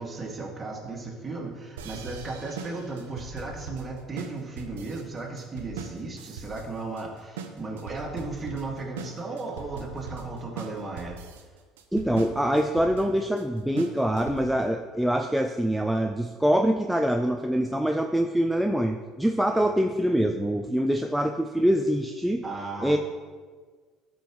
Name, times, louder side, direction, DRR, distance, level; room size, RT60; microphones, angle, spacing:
voice 1, 0.0-11.2 19.5-19.6 22.4-23.0, right 3 dB, 25° right, -1 dB, 2.2 m, -35 dB
sound 1, 1.8-14.7, right 5 dB, 85° right, 0.7 m, -41 dB
voice 2, 11.9-22.4 22.8-23.0, equal, 5° right, 4 dB, 0.5 m, -24 dB
12.5 x 5.5 x 3.1 m, 1.5 s
hypercardioid pair, 70°, 0 cm